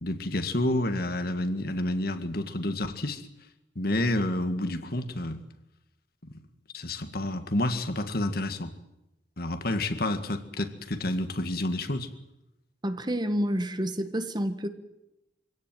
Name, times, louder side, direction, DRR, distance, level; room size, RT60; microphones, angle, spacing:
voice 1, 0.0-3.3 3.8-5.4 6.2-6.4 6.7-8.7 9.4-12.1, left 1 dB, 60° left, 8 dB, 2.0 m, -29 dB
voice 2, 12.8-14.7, equal, 25° right, 9 dB, 1.6 m, -29 dB
24.5 x 17.0 x 9.2 m, 0.90 s
head